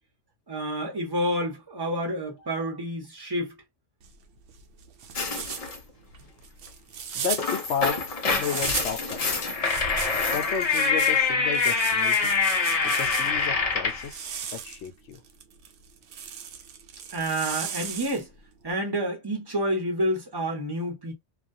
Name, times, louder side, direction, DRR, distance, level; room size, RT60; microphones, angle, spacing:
voice 1, 0.5-3.6 17.1-18.3 18.6-21.1, right 1 dB, 25° right, 0.8 m, -29 dB
voice 2, 2.4-2.8 7.1-9.7 10.3-12.4 12.8-15.2, left 7 dB, 75° left, 0.9 m, -33 dB
sound 1, 4.0-9.1 9.6-13.5 14.0-18.4, right 7 dB, 80° right, 0.9 m, -37 dB
sound 2, 5.1-5.8 7.1-14.1, left 4 dB, 45° left, 0.5 m, -25 dB
2.4 x 2.2 x 2.5 m
omnidirectional pair, 1.2 m